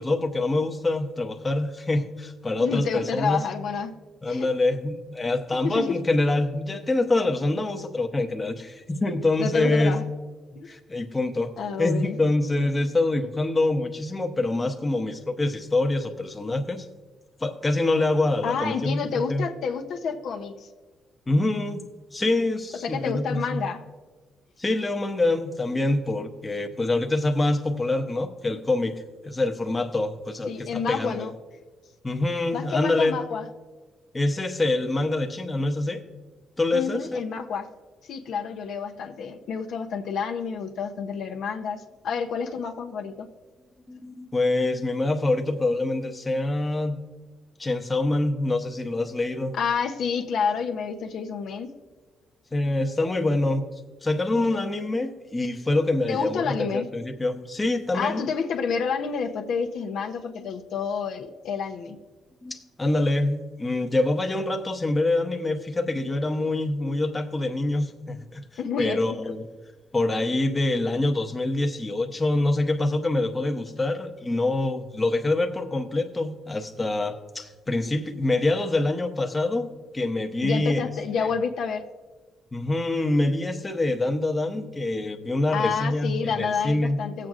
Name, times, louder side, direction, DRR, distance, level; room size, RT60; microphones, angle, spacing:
voice 1, 0.0-3.5 4.2-10.0 10.7-11.5 11.8-16.9 17.4-19.4 21.3-21.8 22.1-23.6 24.6-31.3 32.0-33.2 34.1-36.0 36.6-37.2 43.9-47.0 47.6-49.6 52.5-53.6 54.0-58.2 62.4-68.4 68.8-69.5 69.9-79.7 79.9-80.9 81.2-81.3 82.5-87.0, left 2 dB, 20° left, 5 dB, 0.8 m, -25 dB
voice 2, 2.6-3.9 4.3-4.5 5.6-6.0 9.4-10.0 10.5-10.7 11.6-12.2 18.4-20.7 22.8-23.8 30.5-31.3 32.5-33.5 36.7-37.7 38.1-43.3 49.5-51.7 56.1-56.8 57.9-62.0 68.6-69.0 80.4-81.8 85.5-87.3, left 6 dB, 75° left, 4 dB, 0.7 m, -29 dB
17.0 x 7.6 x 2.5 m, 1.3 s
cardioid pair, 90°, 0 cm